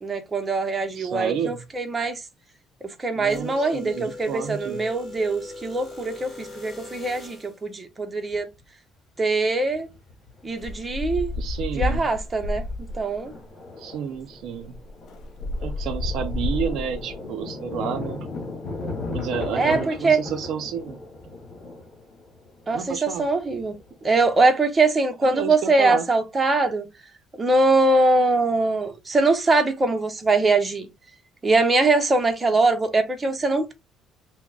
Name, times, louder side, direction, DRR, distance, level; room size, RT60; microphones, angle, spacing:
voice 1, 0.0-2.2 3.0-8.5 9.2-9.9 10.4-11.3 11.8-12.6 12.9-13.3 19.6-20.2 22.7-23.7 24.0-26.9 27.4-30.9 31.4-33.7, right 3 dB, 15° right, 0.6 m, -22 dB
voice 2, 1.0-1.6 3.1-4.9 11.4-12.0 13.8-14.8 15.6-18.3 19.1-21.0 22.7-23.2 25.2-26.1, right 7 dB, 65° right, 0.5 m, -30 dB
sound 1, 3.2-7.6, left 3 dB, 10° left, 2.3 m, -40 dB
Thunder, 8.3-8.4 9.7-10.6 10.8-10.9 11.3-11.6 12.0-24.4, left 3 dB, 30° left, 1.8 m, -37 dB
sound 2, 10.6-13.2 14.1-14.2 14.5-17.1, left 2 dB, 55° left, 0.5 m, -30 dB
5.9 x 2.0 x 2.3 m
cardioid pair, 150°, 0 cm